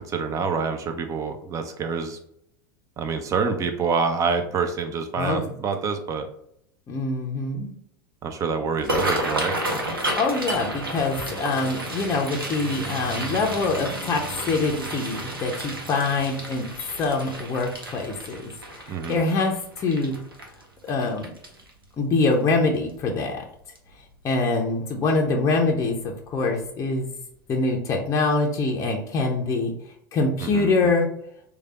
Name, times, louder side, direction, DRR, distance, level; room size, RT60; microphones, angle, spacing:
voice 1, 0.1-2.2 3.0-6.3 8.2-9.6 18.9-19.2 30.4-30.9, right 5 dB, 30° right, 6 dB, 0.6 m, -27 dB
voice 2, 6.9-7.7 10.2-14.2 14.5-16.7 17.0-20.1 20.9-21.3 22.0-23.4 24.2-27.1 27.5-29.7 30.1-31.1, left 3 dB, 25° left, 0 dB, 0.6 m, -24 dB
sound 1, 8.7-21.8 22.3-22.6 22.9-23.3 23.8-23.9 25.1-25.3 25.7-25.8 26.3-26.4, right 1 dB, 85° right, 0.8 m, -32 dB
3.3 x 2.3 x 4.0 m, 0.72 s
figure-of-eight pair, 85°, 12 cm